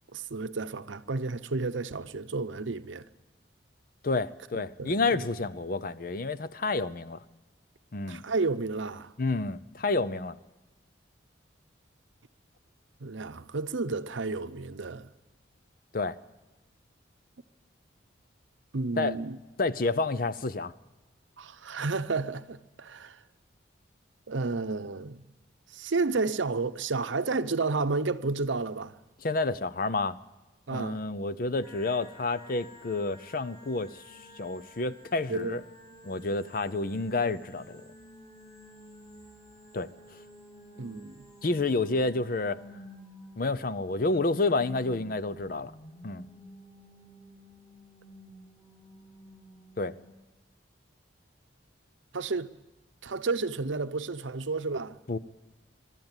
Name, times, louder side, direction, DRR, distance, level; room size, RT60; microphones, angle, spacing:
voice 1, 0.1-3.1 4.5-5.2 8.1-9.1 13.0-15.1 18.7-19.4 21.4-23.2 24.3-25.3 25.7-28.9 30.7-31.0 35.3-35.6 40.8-41.3 52.1-52.5 53.0-55.0, right 3 dB, 80° right, 0.7 m, -31 dB
voice 2, 4.0-7.2 7.9-8.2 9.2-10.4 15.9-16.2 19.0-19.2 19.6-20.7 29.2-30.2 30.7-35.6 36.0-37.8 39.7-39.9 41.4-42.6 43.4-45.7 46.0-46.3 49.8-49.9 55.1-55.2, left 3 dB, 45° left, 0.6 m, -29 dB
sound 1, 31.6-50.1, equal, 20° left, 2.9 m, -52 dB
23.5 x 12.5 x 9.0 m
head